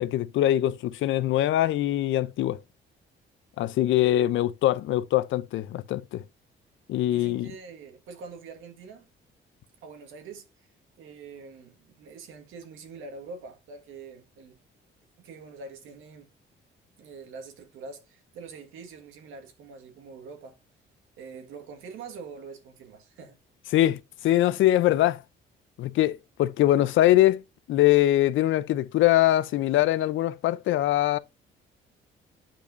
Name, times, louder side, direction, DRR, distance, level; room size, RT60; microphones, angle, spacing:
voice 1, 0.0-2.6 3.6-6.2 6.9-7.5 23.7-25.2 25.8-27.4 27.7-31.2, left 14 dB, 75° left, 0.5 m, -23 dB
voice 2, 7.1-9.1 9.8-10.7 11.0-14.6 15.2-16.3 17.0-20.6 21.2-23.4, right 4 dB, 90° right, 1.7 m, -44 dB
8.6 x 5.1 x 2.6 m
cardioid pair, 90°, 20 cm